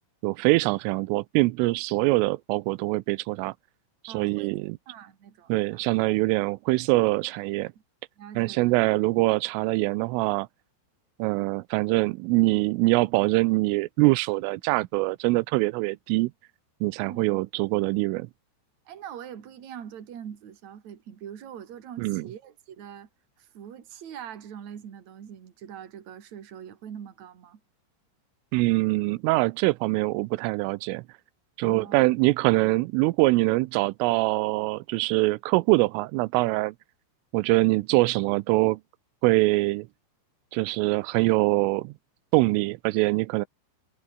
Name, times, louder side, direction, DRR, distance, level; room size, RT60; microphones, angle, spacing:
voice 1, 0.2-3.5 4.0-4.8 5.5-7.7 8.4-10.5 11.2-16.3 16.8-18.3 22.0-22.3 28.5-31.0 31.6-36.7 37.3-38.8 39.2-39.9 40.5-41.9 42.3-43.5, right 22 dB, 85° right, 3.2 m, -24 dB
voice 2, 4.1-4.6 4.9-5.8 8.2-8.7 17.0-17.4 18.9-23.1 23.4-27.6 31.6-32.0, right 9 dB, 45° right, 3.2 m, -43 dB
omnidirectional pair, 5.7 m